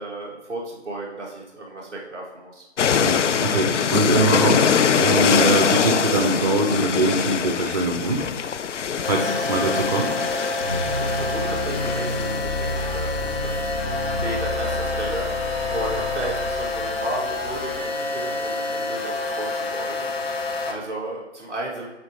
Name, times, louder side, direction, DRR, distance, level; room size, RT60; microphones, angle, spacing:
voice 1, 0.0-2.6 9.6-9.7 11.0-21.9, right 2 dB, ahead, -12 dB, 1.0 m, -34 dB
sound 1, 2.8-13.0, left 7 dB, 85° left, 0.5 m, -23 dB
voice 2, 3.0-8.3 9.0-10.1, right 2 dB, 35° right, 2 dB, 0.5 m, -22 dB
sound 2, 9.0-20.7, left 2 dB, 60° left, 1.1 m, -28 dB
sound 3, 10.6-17.8, left 1 dB, 35° left, 1.0 m, -31 dB
7.8 x 4.1 x 3.4 m, 1.1 s
hypercardioid pair, 160°, 35 cm